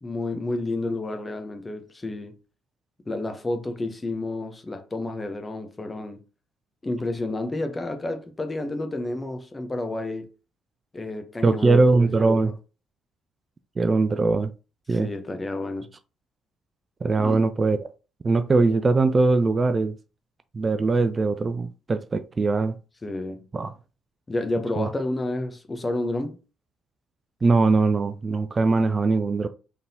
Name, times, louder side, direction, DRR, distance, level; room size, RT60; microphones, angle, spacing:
voice 1, 0.0-2.3 3.1-6.2 6.8-10.3 10.9-12.5 14.9-15.9 17.1-17.4 23.0-23.5 24.3-26.4, left 2 dB, 25° left, 0.9 m, -30 dB
voice 2, 11.4-12.5 13.8-14.5 14.9-15.1 17.0-17.8 18.2-20.0 20.5-22.8 23.5-23.7 24.8-24.9 27.4-29.5, right 3 dB, 35° right, 0.4 m, -21 dB
3.9 x 3.5 x 2.8 m
figure-of-eight pair, 45°, 0 cm